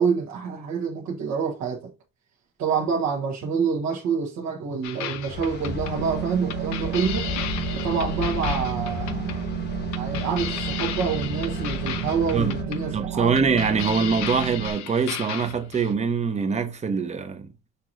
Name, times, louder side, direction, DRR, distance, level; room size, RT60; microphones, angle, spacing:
voice 1, 0.0-1.9 2.6-7.3 7.7-9.4 9.9-13.3, right 6 dB, 70° right, 1.3 m, -27 dB
sound 1, 4.8-15.9, left 10 dB, 70° left, 0.8 m, -35 dB
sound 2, 5.3-12.6, left 4 dB, 35° left, 1.0 m, -34 dB
sound 3, 6.0-14.7, right 10 dB, 85° right, 0.8 m, -32 dB
voice 2, 12.9-17.5, right 5 dB, 25° right, 0.8 m, -24 dB
6.8 x 2.9 x 2.5 m
cardioid pair, 120°, 29 cm